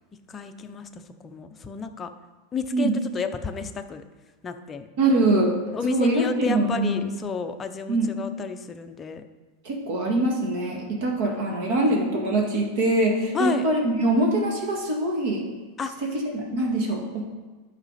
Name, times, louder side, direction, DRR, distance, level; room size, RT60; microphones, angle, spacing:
voice 1, 0.3-2.1 2.5-4.0 4.4-4.9 5.7-9.2 13.3-13.7 15.8-15.9, left 6 dB, 15° left, 6 dB, 0.5 m, -31 dB
voice 2, 5.0-5.5 5.9-7.0 7.9-8.1 9.6-15.4 16.1-17.2, right 2 dB, 60° right, 0 dB, 1.9 m, -23 dB
11.5 x 5.7 x 4.1 m, 1.3 s
supercardioid pair, 160°, 0 cm